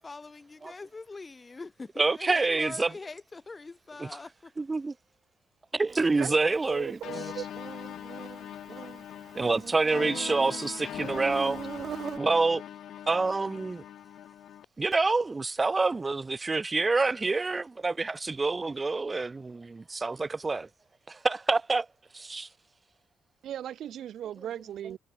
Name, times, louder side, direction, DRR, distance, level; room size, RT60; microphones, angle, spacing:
voice 1, 0.0-4.5, left 3 dB, 25° left, 0.8 m, -43 dB
voice 2, 2.0-2.9 4.0-4.1 4.6-4.9 5.7-7.0 9.3-11.6 12.2-12.6 13.1-13.8 14.8-20.7 21.1-21.9 22.1-22.5, right 3 dB, 25° right, 0.5 m, -27 dB
Insect, 5.9-12.2, right 7 dB, 50° right, 0.9 m, -42 dB
voice 3, 6.2-7.4 23.4-25.0, right 10 dB, 70° right, 1.2 m, -38 dB
sound 1, 7.0-14.6, left 11 dB, 70° left, 0.3 m, -41 dB
cardioid pair, 90°, 0 cm